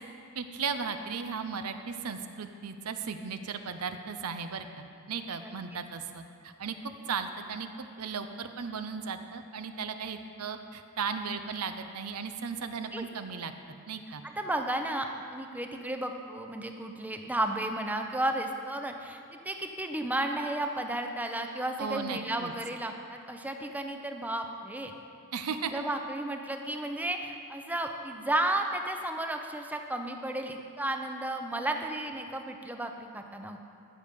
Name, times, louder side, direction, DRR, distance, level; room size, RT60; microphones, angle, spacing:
voice 1, 0.3-6.7 7.1-7.7 8.0-13.5 13.9-14.2 21.8-22.5 25.3-25.8, right 5 dB, 90° right, 8 dB, 0.7 m, -36 dB
voice 2, 5.4-5.8 12.6-13.1 14.2-24.9 25.7-33.6, right 1 dB, 5° right, 5 dB, 0.6 m, -33 dB
15.0 x 6.7 x 5.2 m, 2.5 s
head